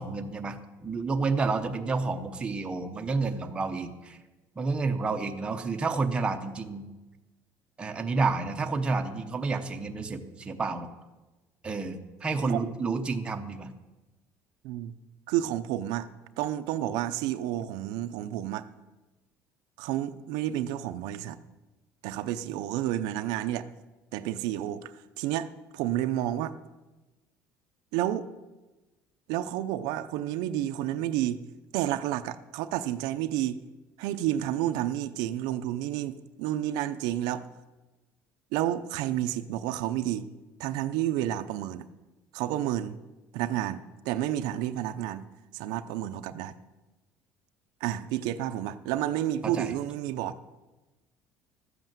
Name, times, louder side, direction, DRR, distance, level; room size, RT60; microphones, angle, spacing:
voice 1, 0.0-4.2 4.6-6.9 7.8-10.9 11.6-13.7 49.4-49.7, right 4 dB, 15° right, 4 dB, 0.8 m, -30 dB
voice 2, 15.3-16.1 16.4-18.6 19.8-21.4 22.0-23.7 24.1-25.5 25.7-26.6 27.9-28.3 29.3-31.4 31.7-33.6 34.0-37.5 38.5-40.3 40.6-41.9 42.3-43.0 43.3-45.2 45.5-46.5 47.8-50.3, right 12 dB, 80° right, 10 dB, 0.7 m, -30 dB
13.5 x 8.0 x 7.4 m, 1.1 s
cardioid pair, 175°, 7 cm